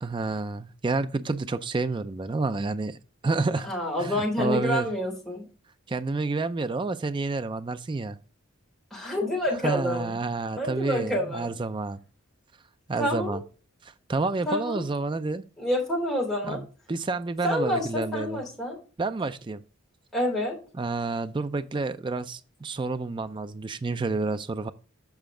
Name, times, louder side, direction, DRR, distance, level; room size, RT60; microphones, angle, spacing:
voice 1, 0.0-3.0 3.2-3.7 4.0-4.9 5.9-8.2 9.6-12.0 12.9-13.4 13.8-15.4 16.4-16.6 16.9-18.4 19.0-19.6 20.8-24.7, right 3 dB, 25° right, 0.4 m, -29 dB
voice 2, 3.7-5.4 8.9-10.2 10.6-11.5 13.0-13.4 14.4-14.8 15.6-16.6 17.4-18.8 20.1-20.6, left 1 dB, ahead, 3.3 m, -28 dB
7.1 x 5.6 x 3.7 m
head